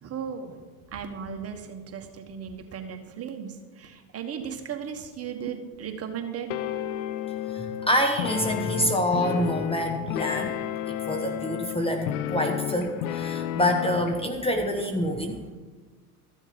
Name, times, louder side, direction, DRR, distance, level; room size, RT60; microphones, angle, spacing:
voice 1, 0.0-0.6 0.9-6.5, right 7 dB, 30° right, 5 dB, 1.5 m, -36 dB
sound 1, 6.5-14.2, left 11 dB, 70° left, 0.7 m, -32 dB
voice 2, 7.5-10.6 10.9-15.5, equal, 10° left, 4 dB, 1.0 m, -27 dB
13.5 x 7.1 x 5.3 m, 1.4 s
hypercardioid pair, 100°, 45 cm